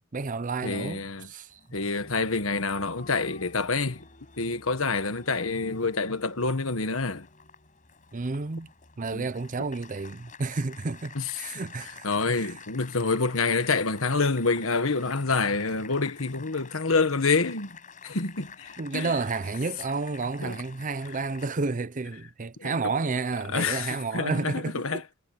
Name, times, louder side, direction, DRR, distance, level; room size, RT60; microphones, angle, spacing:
voice 1, 0.0-1.6 8.1-8.7 9.0-12.1 12.3-12.5 18.8-25.0, right 4 dB, 40° right, 0.6 m, -31 dB
voice 2, 0.6-1.3 1.7-4.1 4.4-7.3 9.1-9.3 11.1-11.3 12.0-17.8 18.0-19.2 20.4-20.6 22.6-22.8 23.5-25.0, left 4 dB, 70° left, 1.5 m, -27 dB
Applause, 1.5-21.5, left 5 dB, 40° left, 5.8 m, -49 dB
head